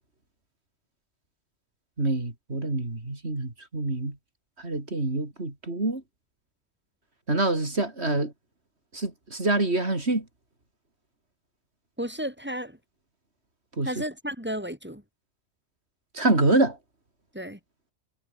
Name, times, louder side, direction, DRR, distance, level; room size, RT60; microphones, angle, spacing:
voice 1, 2.0-4.1 4.6-6.0 7.3-8.3 8.9-10.2 13.8-13.9 16.1-16.8, right 2 dB, 55° right, 4.8 m, -26 dB
voice 2, 12.0-12.8 13.8-15.0 17.3-17.6, equal, 10° right, 7.3 m, -33 dB
omnidirectional pair, 1.3 m